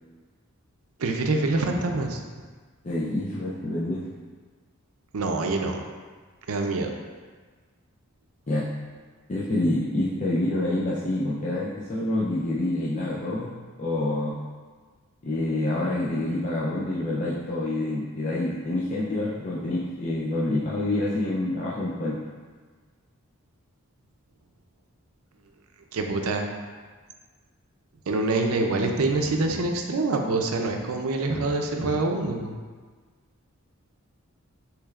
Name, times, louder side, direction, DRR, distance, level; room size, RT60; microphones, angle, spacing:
voice 1, 1.0-2.2 5.1-5.8 6.5-6.9 25.9-26.4 28.1-32.6, right 2 dB, 80° right, 3 dB, 0.5 m, -25 dB
voice 2, 2.8-4.1 8.5-8.7 9.3-13.5 13.8-14.4 15.2-22.2, left 1 dB, 35° left, -8 dB, 0.5 m, -27 dB
6.2 x 3.2 x 2.4 m, 1.5 s
head